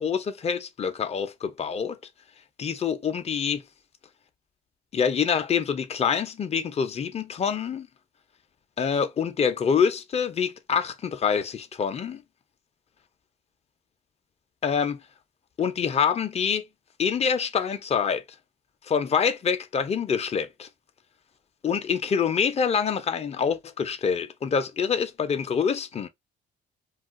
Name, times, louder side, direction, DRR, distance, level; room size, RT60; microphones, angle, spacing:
voice 1, 0.0-2.0 2.6-3.6 4.9-7.9 8.8-12.2 14.6-15.0 15.6-16.6 17.0-18.2 18.9-20.7 21.6-26.1, left 6 dB, 30° left, 0.5 m, -26 dB
2.4 x 2.4 x 3.5 m
cardioid pair, 90°, 20 cm